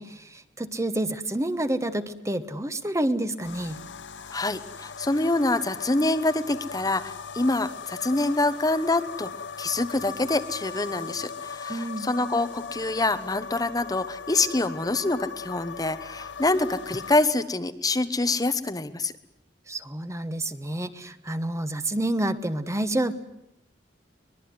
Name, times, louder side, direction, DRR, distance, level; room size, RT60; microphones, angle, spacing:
voice 1, 0.0-3.8 11.7-12.1 19.7-23.1, right 1 dB, 15° right, 11 dB, 1.2 m, -29 dB
sound 1, 3.4-17.2, left 6 dB, 90° left, 0.9 m, -39 dB
voice 2, 4.3-9.3 9.6-19.1, left 2 dB, 20° left, 10 dB, 1.0 m, -26 dB
23.5 x 21.5 x 9.5 m, 0.82 s
head